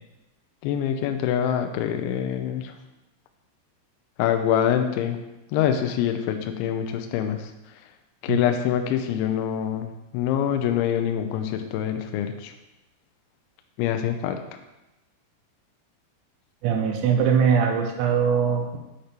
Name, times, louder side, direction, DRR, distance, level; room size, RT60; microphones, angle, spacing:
voice 1, 0.6-2.7 4.2-5.2 5.5-7.4 8.2-9.9 10.1-12.5 13.8-14.4, left 9 dB, 85° left, 6 dB, 2.7 m, -25 dB
voice 2, 16.6-18.8, right 7 dB, 90° right, 3 dB, 3.4 m, -21 dB
8.0 x 5.1 x 4.3 m, 0.96 s
omnidirectional pair, 5.9 m